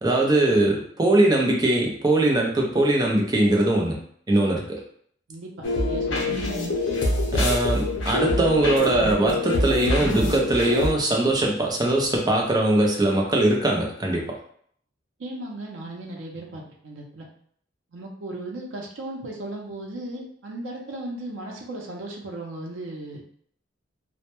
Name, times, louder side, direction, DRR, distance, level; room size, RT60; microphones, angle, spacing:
voice 1, 0.0-4.0 4.3-4.8 7.3-14.4, right 1 dB, 20° right, -1 dB, 0.5 m, -21 dB
voice 2, 5.3-6.4 15.2-17.3 17.9-23.2, right 1 dB, 90° right, 0 dB, 0.6 m, -36 dB
sound 1, 5.6-10.9, left 2 dB, 80° left, 0.6 m, -25 dB
2.1 x 2.1 x 2.9 m, 0.62 s
head